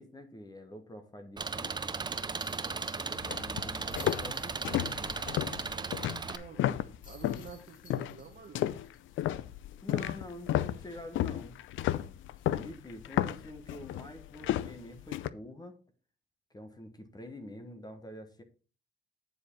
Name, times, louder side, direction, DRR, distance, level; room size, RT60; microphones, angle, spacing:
voice 1, 0.0-1.8 2.5-5.2 9.8-11.6 12.5-15.8 16.5-18.4, left 1 dB, 20° left, 1.3 m, -47 dB
Engine, 1.4-6.4, right 4 dB, 20° right, 0.7 m, -36 dB
sound 1, 2.4-5.6 5.9-6.0 7.0-9.7 10.1-10.2 12.4-12.6, left 3 dB, 45° left, 3.8 m, -58 dB
sound 2, 3.1-7.5 7.9-8.2 8.6-15.3, left 13 dB, 75° left, 0.5 m, -33 dB
voice 2, 6.1-8.6, right 6 dB, 50° right, 1.4 m, -50 dB
9.4 x 4.9 x 4.5 m
cardioid pair, 90°, 20 cm